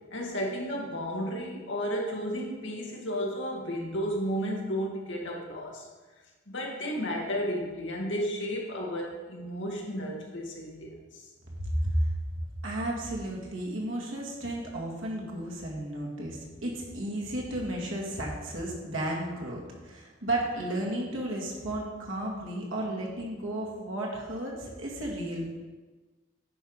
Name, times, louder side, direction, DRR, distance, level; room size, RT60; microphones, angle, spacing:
voice 1, 0.1-5.9 6.5-11.3, equal, 65° left, -1 dB, 1.8 m, -33 dB
voice 2, 11.6-12.1 12.6-25.5, right 1 dB, 80° right, -2 dB, 2.1 m, -33 dB
10.0 x 4.8 x 5.5 m, 1.3 s
head